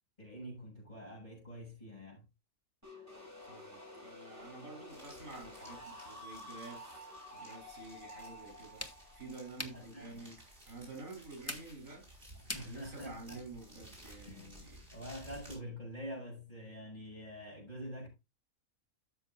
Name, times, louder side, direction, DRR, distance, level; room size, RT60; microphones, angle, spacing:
voice 1, 0.2-2.2 9.6-10.3 12.4-13.4 14.2-14.6 14.9-18.1, equal, 30° left, 7.0 m, -46 dB
sound 1, 2.8-10.5, left 1 dB, 10° right, 5.8 m, -51 dB
voice 2, 3.4-12.3 12.6-14.9, right 3 dB, 75° right, 4.6 m, -50 dB
sound 2, 4.9-15.6, right 1 dB, 40° right, 6.4 m, -56 dB
sound 3, 7.6-13.5, left 1 dB, 10° left, 1.2 m, -49 dB
13.0 x 7.9 x 2.6 m
omnidirectional pair, 1.4 m